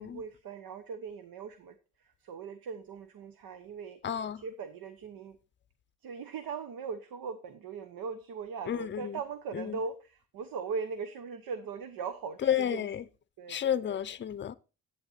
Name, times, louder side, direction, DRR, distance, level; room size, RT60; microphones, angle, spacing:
voice 1, 0.0-4.0 4.4-5.4 6.0-12.9 13.4-13.8, right 5 dB, 85° right, 1.1 m, -40 dB
voice 2, 4.0-4.4 8.7-9.2 9.5-9.8 12.4-13.0 13.5-14.5, left 9 dB, 35° left, 0.6 m, -31 dB
11.0 x 8.8 x 4.2 m
wide cardioid pair, 175°, 34 cm